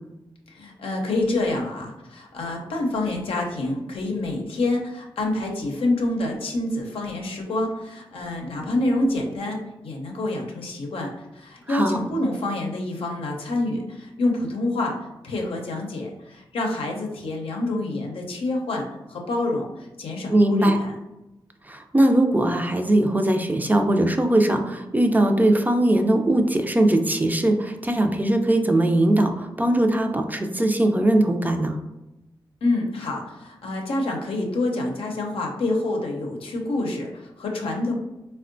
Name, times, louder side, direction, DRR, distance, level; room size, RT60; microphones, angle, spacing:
voice 1, 0.5-15.0 15.2-20.9 32.6-37.9, left 2 dB, 80° left, 0 dB, 0.6 m, -27 dB
voice 2, 11.7-12.0 20.3-20.8 21.6-31.8, right 1 dB, 20° right, 4 dB, 0.4 m, -20 dB
3.5 x 2.2 x 2.5 m, 0.97 s
cardioid pair, 45°, 9 cm